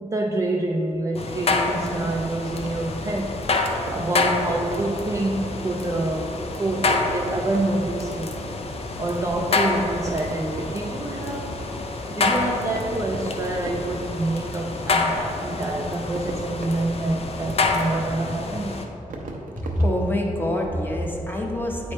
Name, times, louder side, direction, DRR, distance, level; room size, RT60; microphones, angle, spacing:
voice 1, 0.0-3.4 3.9-8.4 9.0-11.6 12.1-18.7, right 2 dB, 20° right, -1 dB, 0.4 m, -27 dB
sound 1, 1.1-18.8, left 3 dB, 50° left, 0.5 m, -27 dB
Fireworks, 2.0-20.8, right 2 dB, 85° right, 0.7 m, -41 dB
voice 2, 19.7-21.9, left 1 dB, 15° left, -1 dB, 0.8 m, -25 dB
8.1 x 3.2 x 4.2 m, 2.7 s
wide cardioid pair, 115°, 14 cm